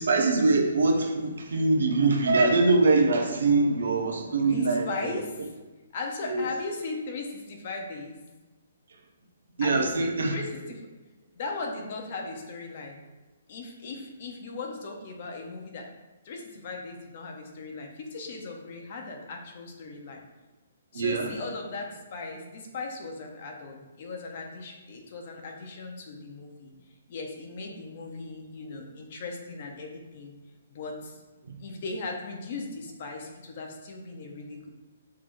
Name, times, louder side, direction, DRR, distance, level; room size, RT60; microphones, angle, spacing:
voice 1, 0.0-5.2 6.3-6.4 9.6-10.4 20.9-21.3, right 3 dB, 80° right, 3 dB, 0.8 m, -23 dB
voice 2, 4.4-5.5 5.9-8.2 9.6-10.8 11.3-13.0 13.5-15.9 16.2-20.2 20.9-26.7 27.1-30.3 30.7-31.2 31.6-34.7, left 3 dB, 35° left, 2 dB, 0.7 m, -38 dB
5.9 x 3.1 x 2.5 m, 1.2 s
hypercardioid pair, 175°, 0 cm